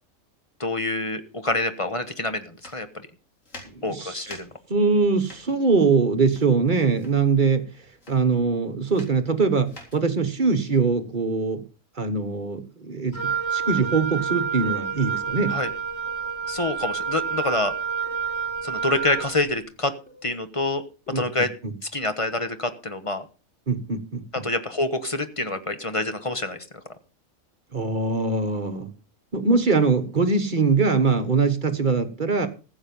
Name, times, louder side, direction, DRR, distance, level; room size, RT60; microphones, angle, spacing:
voice 1, 0.6-2.9 3.8-4.5 15.5-15.7 16.5-17.7 18.6-19.9 20.2-20.8 21.1-21.5 21.9-23.2 24.3-26.6, left 2 dB, 25° left, 9 dB, 1.2 m, -26 dB
sound 1, 2.5-11.8, left 1 dB, 65° left, 4.1 m, -48 dB
voice 2, 3.7-4.2 4.7-7.7 8.1-11.6 12.0-15.6 21.1-21.2 21.6-21.7 23.7-24.4 27.7-28.9 29.3-32.5, right 4 dB, 35° right, 9 dB, 1.3 m, -22 dB
Wind instrument woodwind instrument, 13.1-19.4, right 7 dB, 45° left, 3.4 m, -28 dB
sound 2, 16.1-16.3 17.1-17.3 18.1-18.3 19.1-19.3 20.1-20.3 21.1-21.4, left 3 dB, 5° left, 3.8 m, -48 dB
15.0 x 8.1 x 5.4 m, 0.34 s
omnidirectional pair, 1.4 m